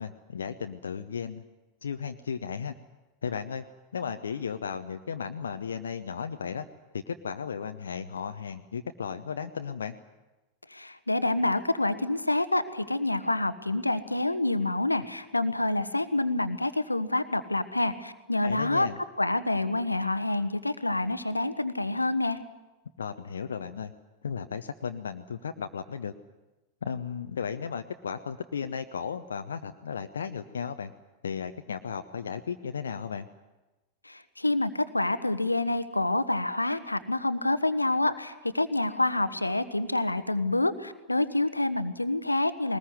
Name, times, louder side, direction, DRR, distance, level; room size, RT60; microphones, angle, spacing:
voice 1, 0.0-1.4 1.8-2.7 3.2-3.6 3.9-6.6 7.1-9.9 18.4-19.0 23.0-23.9 24.2-26.1 26.8-30.9 31.2-33.3, left 6 dB, 70° left, 7 dB, 0.8 m, -35 dB
voice 2, 10.7-18.9 19.2-22.4 34.0-42.8, left 2 dB, 85° left, 13 dB, 1.1 m, -27 dB
21.0 x 20.0 x 9.6 m, 1.1 s
figure-of-eight pair, 90°, 0 cm